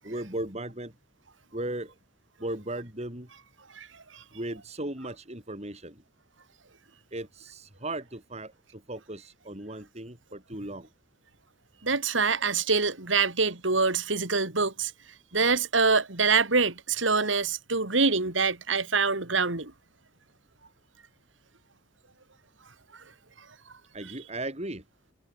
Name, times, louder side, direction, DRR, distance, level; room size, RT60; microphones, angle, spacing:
voice 1, 0.0-1.0 1.5-2.0 2.4-3.3 4.3-6.0 7.1-10.9 23.9-24.8, right 1 dB, 35° right, 6.7 m, -37 dB
voice 2, 3.7-4.2 11.8-14.9 15.3-19.7, right 4 dB, 80° right, 3.3 m, -25 dB
head